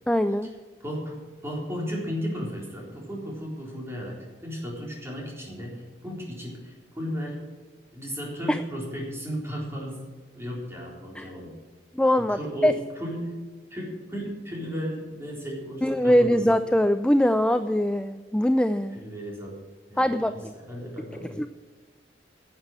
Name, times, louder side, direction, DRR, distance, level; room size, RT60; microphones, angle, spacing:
voice 1, 0.1-0.5 8.5-8.6 11.2-11.3 11.9-12.7 15.8-19.0 20.0-20.5 21.4-21.5, equal, 5° left, 10 dB, 0.4 m, -22 dB
voice 2, 0.8-7.4 7.9-11.5 12.3-13.4 13.7-16.5 18.9-19.6 19.9-21.5, equal, 15° right, -2 dB, 3.8 m, -35 dB
11.0 x 7.9 x 8.9 m, 1.3 s
head